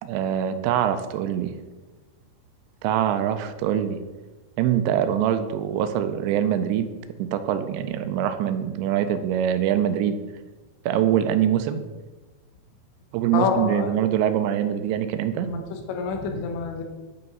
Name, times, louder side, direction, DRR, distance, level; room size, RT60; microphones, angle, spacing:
voice 1, 0.0-1.5 2.8-4.0 4.6-6.9 7.2-10.2 10.9-11.8 13.1-15.5, right 10 dB, 85° right, 10 dB, 2.8 m, -24 dB
voice 2, 13.3-14.0 15.3-16.8, left 5 dB, 80° left, 4 dB, 3.3 m, -27 dB
9.0 x 5.4 x 5.4 m, 1.2 s
omnidirectional pair, 5.2 m